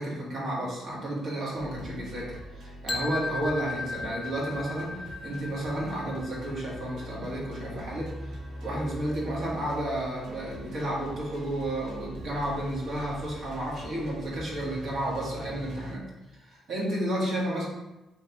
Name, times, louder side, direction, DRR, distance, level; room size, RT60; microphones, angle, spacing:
voice 1, 0.0-17.7, right 1 dB, 65° right, -4 dB, 1.2 m, -32 dB
sound 1, 1.5-15.9, equal, 85° right, 0.8 m, -43 dB
sound 2, 2.9-8.8, left 3 dB, 30° left, 0.4 m, -37 dB
3.2 x 3.2 x 2.9 m, 1.0 s
cardioid pair, 90°, 0 cm